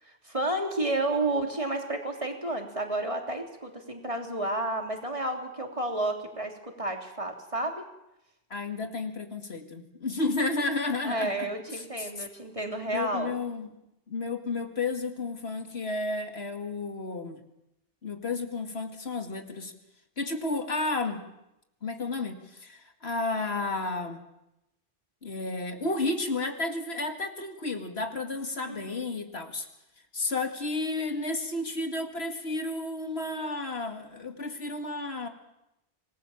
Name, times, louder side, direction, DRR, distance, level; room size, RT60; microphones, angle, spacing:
voice 1, 0.0-7.9 11.0-13.3 28.7-29.1, right 2 dB, 30° right, 3 dB, 3.3 m, -31 dB
voice 2, 8.5-12.1 12.9-13.7 14.1-17.4 18.0-19.7 20.2-21.2 21.8-24.2 25.2-29.7 30.1-35.3, left 3 dB, 85° left, 6 dB, 2.5 m, -32 dB
26.5 x 20.0 x 7.3 m, 0.85 s
omnidirectional pair, 1.0 m